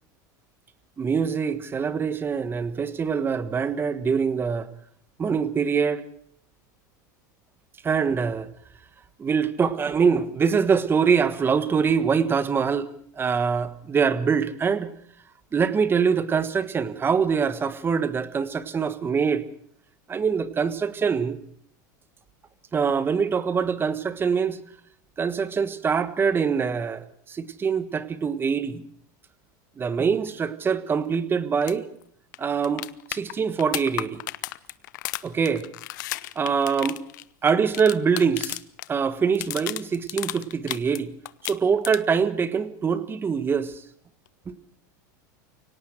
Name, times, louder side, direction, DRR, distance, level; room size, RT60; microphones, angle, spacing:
voice 1, 1.0-4.7 5.2-6.1 7.8-8.5 9.2-12.9 13.2-14.9 15.5-19.4 20.1-21.4 22.7-24.6 25.2-28.8 29.8-31.9 32.4-32.8 33.1-34.2 35.2-35.7 36.3-37.0 37.4-38.6 38.9-41.1 41.4-43.8 44.5-44.6, right 6 dB, 20° right, 14 dB, 1.4 m, -24 dB
sound 1, 31.6-31.7 32.0-32.1 32.3-38.9 39.2-41.0 41.2-42.2 44.3-44.4, left 18 dB, 75° left, 0.8 m, -34 dB
24.0 x 18.0 x 6.3 m, 0.63 s
supercardioid pair, 120°, 10 cm